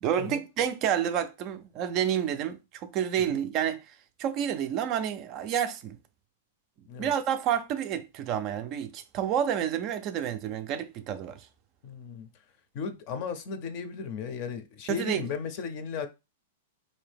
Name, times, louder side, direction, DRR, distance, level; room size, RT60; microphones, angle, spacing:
voice 1, 0.0-6.0 7.0-11.5 14.9-15.2, right 9 dB, 30° right, 0.4 m, -29 dB
voice 2, 11.8-12.3 12.7-16.1, left 6 dB, 40° left, 0.6 m, -35 dB
3.6 x 2.7 x 3.4 m
supercardioid pair, 155°, 0 cm